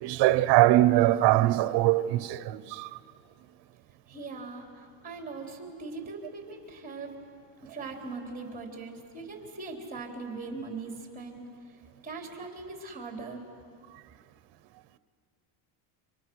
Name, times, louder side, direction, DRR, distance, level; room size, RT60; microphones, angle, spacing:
voice 1, 0.0-2.9, right 15 dB, 60° right, 1.0 m, -22 dB
voice 2, 4.1-7.1 7.6-11.4 12.0-13.4, right 3 dB, 20° right, 4.0 m, -40 dB
30.0 x 26.5 x 6.4 m
cardioid pair, 140°, 46 cm